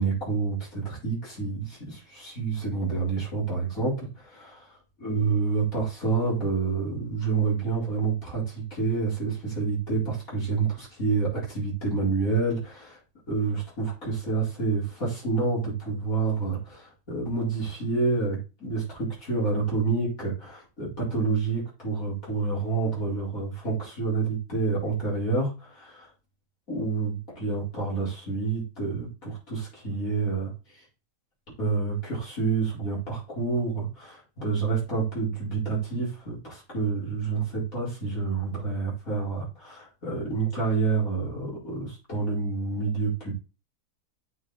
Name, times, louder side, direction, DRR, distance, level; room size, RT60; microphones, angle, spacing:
voice 1, 0.0-4.7 5.0-13.0 13.3-26.1 26.7-30.5 31.6-43.3, right 4 dB, 55° left, -5 dB, 4.7 m, -28 dB
8.0 x 5.0 x 4.1 m, 0.31 s
omnidirectional pair, 1.7 m